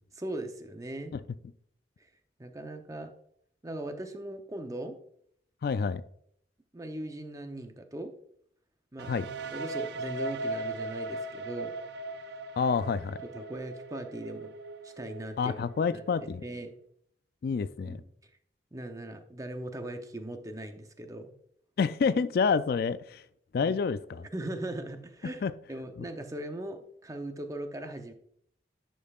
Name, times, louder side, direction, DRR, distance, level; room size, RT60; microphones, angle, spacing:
voice 1, 0.1-1.2 2.4-3.1 3.6-5.0 6.7-8.1 8.9-9.1 9.5-11.7 13.3-14.5 14.8-15.6 15.9-16.0 16.4-16.7 17.8-18.0 18.7-21.3 23.6-23.7 24.3-28.1, right 1 dB, 20° right, 6 dB, 0.6 m, -39 dB
voice 2, 5.6-6.0 9.1-9.3 12.6-13.2 15.4-16.4 17.4-18.0 21.8-23.2 23.5-24.3 25.4-25.5 26.0-26.1, left 5 dB, 55° left, 14 dB, 0.3 m, -28 dB
sound 1, 9.0-16.7, right 2 dB, 65° right, 0.4 m, -39 dB
10.0 x 5.4 x 2.4 m, 0.67 s
head